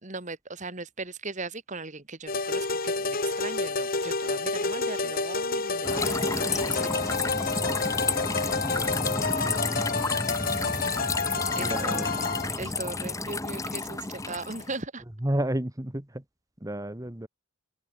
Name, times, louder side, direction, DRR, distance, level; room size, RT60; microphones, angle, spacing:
voice 1, 0.0-7.3 11.6-12.2 12.6-15.0, right 3 dB, 35° right, 2.3 m, -38 dB
sound 1, 2.3-12.6, left 3 dB, 40° left, 2.3 m, -29 dB
sound 2, 5.8-14.8, left 3 dB, 15° left, 1.0 m, -31 dB
voice 2, 8.8-9.8 11.6-12.1 15.2-16.2 16.6-17.3, right 1 dB, 15° right, 1.3 m, -32 dB
head